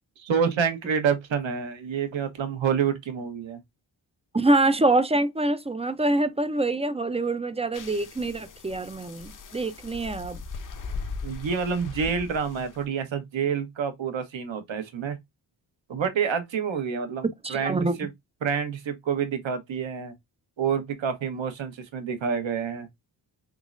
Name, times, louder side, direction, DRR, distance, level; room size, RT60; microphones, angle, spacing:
voice 1, 0.3-3.6 11.2-15.2 15.9-18.1 18.4-20.1 20.6-22.9, right 7 dB, 75° right, 1.0 m, -28 dB
voice 2, 4.3-10.4 17.4-18.0, right 2 dB, 15° right, 0.3 m, -25 dB
sound 1, 7.7-12.8, left 4 dB, 45° left, 0.6 m, -39 dB
3.7 x 3.1 x 2.4 m
wide cardioid pair, 100°, 47 cm